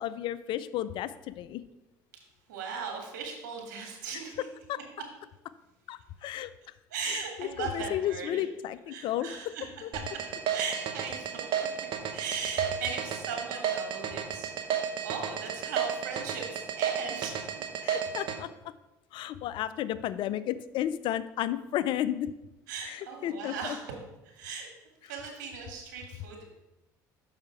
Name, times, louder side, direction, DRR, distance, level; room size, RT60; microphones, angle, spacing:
voice 1, 0.0-1.6 4.7-4.8 5.9-6.5 7.0-9.3 9.8-9.9 17.8-18.5 19.1-22.3 22.9-23.8, left 12 dB, 60° left, 14 dB, 0.4 m, -33 dB
voice 2, 2.5-4.5 6.2-6.3 6.9-8.4 8.9-9.6 10.5-14.5 15.0-17.5 22.7-24.0 24.2-24.7 25.1-26.4, right 6 dB, 85° right, 1 dB, 1.8 m, -38 dB
sound 1, 9.9-18.4, right 9 dB, 60° right, 1.0 m, -31 dB
6.5 x 5.6 x 4.7 m, 0.97 s
hypercardioid pair, 75°, 10 cm